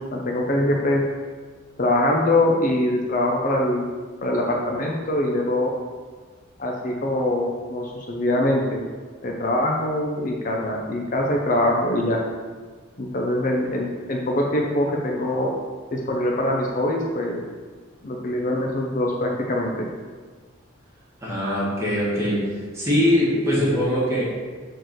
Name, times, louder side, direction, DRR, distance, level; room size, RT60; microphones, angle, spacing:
voice 1, 0.1-1.0 1.8-3.8 4.2-5.7 6.6-8.8 9.2-12.2 13.0-15.5 15.9-17.4 18.0-19.9, left 1 dB, 40° left, 0 dB, 0.6 m, -23 dB
voice 2, 21.2-22.4 22.7-24.2, equal, 15° right, -7 dB, 1.9 m, -21 dB
4.8 x 4.5 x 6.0 m, 1.5 s
head